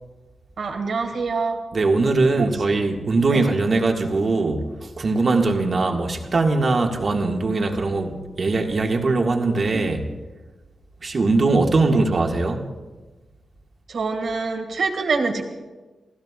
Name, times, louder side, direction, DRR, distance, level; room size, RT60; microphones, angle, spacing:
voice 1, 0.6-1.6 2.4-2.5 3.3-3.4 11.9-12.0 13.9-15.4, right 4 dB, 65° right, 2.0 m, -25 dB
voice 2, 1.7-10.1 11.0-12.6, right 3 dB, 50° right, 1.7 m, -21 dB
29.5 x 16.0 x 2.4 m
cardioid pair, 90°, 0 cm